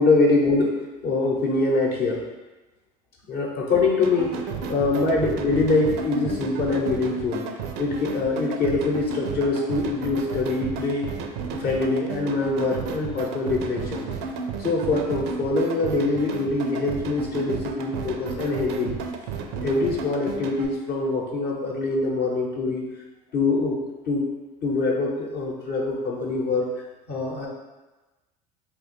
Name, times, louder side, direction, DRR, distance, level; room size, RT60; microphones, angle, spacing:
voice 1, 0.0-2.2 3.3-7.5 7.8-11.1 11.5-14.1 14.6-18.9 19.6-22.8 23.3-23.8 24.1-24.3 24.6-26.7 27.1-27.5, left 3 dB, 50° left, -2 dB, 0.8 m, -24 dB
sound 1, 4.0-20.7, right 5 dB, 70° right, 0.4 m, -33 dB
2.9 x 2.3 x 4.1 m, 1.1 s
hypercardioid pair, 75°, 21 cm